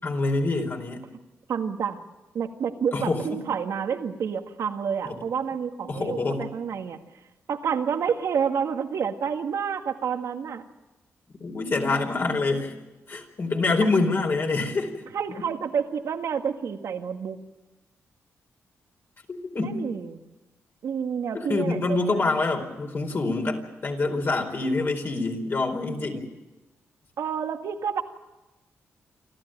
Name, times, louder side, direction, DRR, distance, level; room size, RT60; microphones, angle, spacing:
voice 1, 0.0-1.0 2.9-3.4 5.0-5.2 5.9-6.5 11.4-12.7 13.1-15.0 19.3-19.8 21.3-26.3, left 3 dB, 45° left, 3 dB, 4.6 m, -26 dB
voice 2, 1.5-2.0 2.3-7.0 7.5-10.6 15.1-17.4 19.6-20.2 20.8-22.2 27.2-28.0, right 7 dB, 75° right, 6 dB, 1.8 m, -29 dB
28.0 x 13.5 x 9.1 m, 1.1 s
cardioid pair, 80°, 5 cm